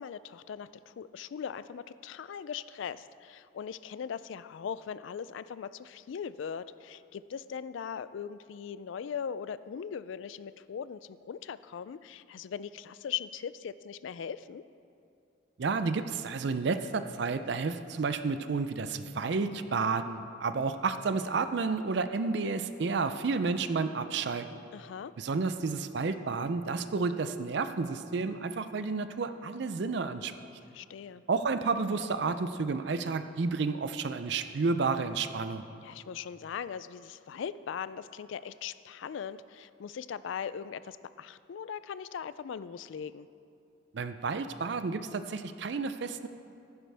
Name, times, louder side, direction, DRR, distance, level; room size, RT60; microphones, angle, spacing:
voice 1, 0.0-14.6 24.7-25.1 30.7-31.2 35.8-43.3, left 7 dB, 70° left, 16 dB, 0.3 m, -40 dB
voice 2, 15.6-24.6 25.2-30.3 31.3-35.7 43.9-46.3, right 4 dB, 55° right, 10 dB, 0.4 m, -31 dB
14.5 x 11.0 x 3.4 m, 2.6 s
head